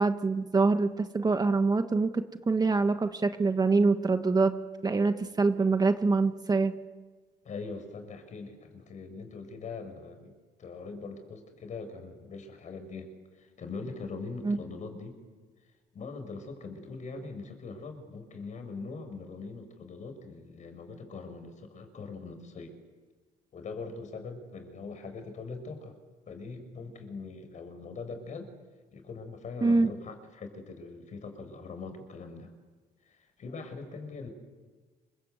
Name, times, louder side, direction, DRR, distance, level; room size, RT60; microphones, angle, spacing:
voice 1, 0.0-4.5 4.8-6.8 14.4-14.6 29.6-29.9, right 3 dB, 25° right, 8 dB, 1.4 m, -25 dB
voice 2, 7.4-10.3 10.6-15.2 15.9-22.8 23.5-25.9 26.3-28.5 28.9-32.5 33.0-34.3, left 4 dB, 45° left, 8 dB, 6.0 m, -42 dB
27.5 x 25.0 x 8.1 m, 1.4 s
cardioid pair, 110°, 17 cm